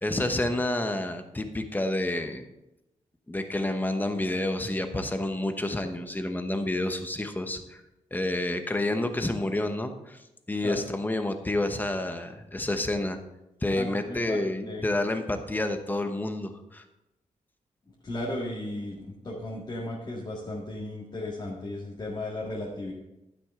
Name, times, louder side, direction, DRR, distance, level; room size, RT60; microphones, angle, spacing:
voice 1, 0.0-2.4 3.3-7.8 8.1-10.2 10.5-13.2 13.6-16.8, left 1 dB, 15° left, 7 dB, 1.0 m, -29 dB
voice 2, 13.7-14.9 18.0-22.9, left 1 dB, 35° left, -4 dB, 1.8 m, -35 dB
11.5 x 9.9 x 3.7 m, 0.93 s
wide cardioid pair, 135°, 13 cm